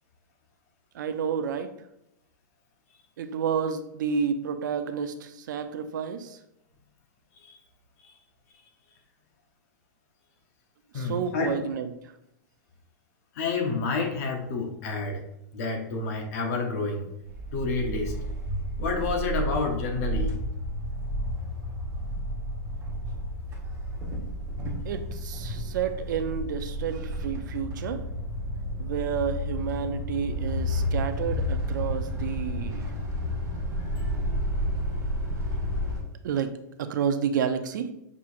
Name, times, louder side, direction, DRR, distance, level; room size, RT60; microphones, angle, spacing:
voice 1, 0.9-1.7 3.2-6.4 10.9-11.9 24.9-28.1 28.8-32.9 36.2-37.9, right 7 dB, 75° right, 9 dB, 0.5 m, -30 dB
voice 2, 10.9-11.6 13.3-15.2 15.5-17.1 17.5-18.1 18.8-20.3, left 3 dB, 50° left, 3 dB, 0.9 m, -29 dB
sound 1, 17.2-36.0, equal, 30° right, 1.3 m, -31 dB
6.1 x 2.8 x 2.5 m, 0.83 s
supercardioid pair, 150°, 10 cm